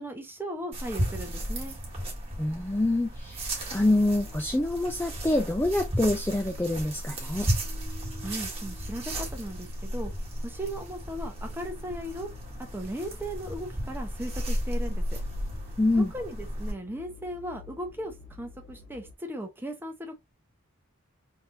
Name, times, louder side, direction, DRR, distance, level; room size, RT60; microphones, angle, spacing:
voice 1, 0.0-1.8 8.2-10.1 10.4-12.3 12.7-15.2 16.1-20.2, equal, 10° right, 0.9 m, -37 dB
sound 1, 0.7-16.7, equal, 25° right, 1.5 m, -34 dB
voice 2, 2.4-7.5 15.8-16.1, left 2 dB, 10° left, 0.4 m, -26 dB
sound 2, 3.9-19.1, left 3 dB, 50° left, 1.6 m, -51 dB
3.6 x 3.4 x 2.7 m
head